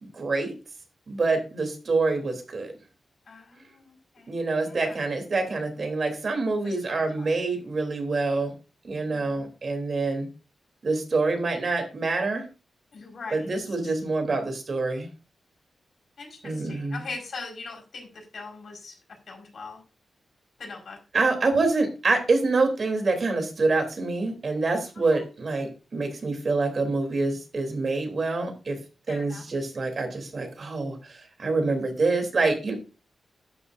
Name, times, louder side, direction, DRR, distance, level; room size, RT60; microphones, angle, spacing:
voice 1, 0.0-0.5 1.1-2.7 4.3-8.5 8.8-10.3 10.8-12.5 13.3-15.1 16.4-17.0 21.1-28.8 29.1-32.7, right 3 dB, 45° right, 5 dB, 3.3 m, -26 dB
voice 2, 3.2-5.0 6.6-7.3 9.0-9.5 12.9-13.5 13.8-13.9 16.2-19.0 19.3-19.8 20.6-21.0 25.1-25.2 29.1-29.5, left 4 dB, 60° left, 1 dB, 4.9 m, -41 dB
12.5 x 11.5 x 2.6 m, 0.31 s
wide cardioid pair, 135°, 0 cm